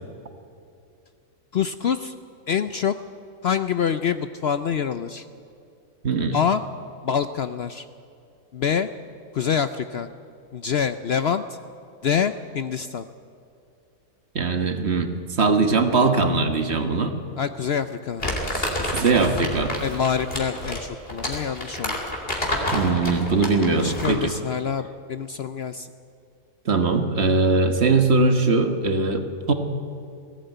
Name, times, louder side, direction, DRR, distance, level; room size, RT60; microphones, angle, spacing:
voice 1, 1.5-2.1 2.5-3.0 3.4-5.3 6.3-6.6 7.0-7.9 8.5-8.9 9.3-10.1 10.5-11.6 12.0-13.0 17.4-19.1 19.8-22.0 23.8-25.9, left 7 dB, 60° left, 11 dB, 0.7 m, -26 dB
voice 2, 6.0-6.4 14.3-15.1 15.4-17.2 18.8-19.8 22.7-24.3 26.6-29.5, right 3 dB, 50° right, 7 dB, 1.6 m, -21 dB
Crumpling crinkling, 18.2-24.3, left 1 dB, 40° left, 3.3 m, -29 dB
19.5 x 16.0 x 9.1 m, 2.5 s
omnidirectional pair, 1.5 m